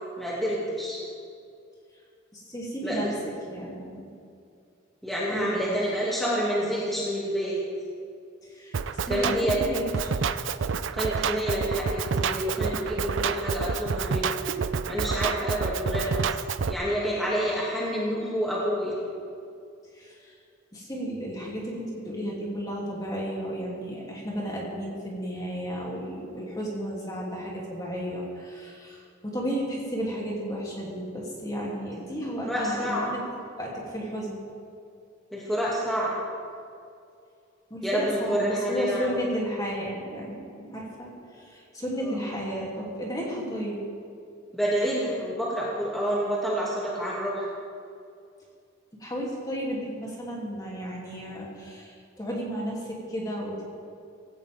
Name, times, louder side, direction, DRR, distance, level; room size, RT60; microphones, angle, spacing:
voice 1, 0.2-1.0 2.8-3.1 5.0-7.6 9.1-9.6 10.9-14.5 14.9-16.3 16.6-18.9 32.5-33.1 35.3-36.2 37.8-39.1 42.0-42.1 44.5-47.5, equal, ahead, -7 dB, 2.4 m, -28 dB
voice 2, 2.3-4.1 5.3-5.8 8.4-10.1 19.9-20.3 20.7-33.2 33.5-34.4 37.7-43.8 49.0-53.6, equal, 20° left, -4 dB, 2.9 m, -33 dB
Drum kit, 8.7-16.7, right 5 dB, 70° right, 0.5 m, -28 dB
17.5 x 17.0 x 3.6 m, 2.4 s
head